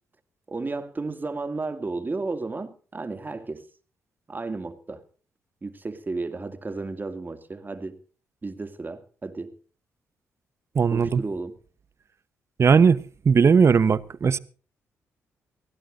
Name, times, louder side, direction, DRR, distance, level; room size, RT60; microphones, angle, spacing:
voice 1, 0.5-3.7 4.3-5.0 5.6-8.0 8.4-9.6 10.9-11.6, right 3 dB, 30° right, 2.3 m, -33 dB
voice 2, 10.7-11.2 12.6-14.4, right 6 dB, 50° right, 0.9 m, -18 dB
23.5 x 16.0 x 2.6 m
supercardioid pair, 55°, 6 cm